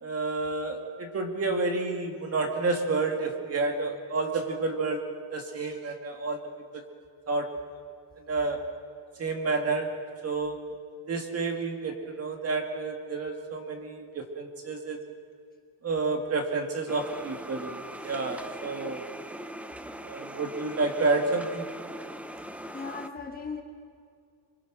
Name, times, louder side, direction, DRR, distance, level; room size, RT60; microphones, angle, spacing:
voice 1, 0.0-6.8 7.3-7.6 8.3-8.7 9.2-10.6 11.1-15.0 15.8-17.8 18.0-19.1 20.0-21.7, right 3 dB, 30° right, 4 dB, 2.3 m, -30 dB
sound 1, 16.9-23.1, right 1 dB, 5° right, 0.6 m, -41 dB
voice 2, 22.7-23.6, left 4 dB, 20° left, 3 dB, 1.3 m, -37 dB
26.5 x 25.0 x 6.3 m, 2.2 s
cardioid pair, 175°, 46 cm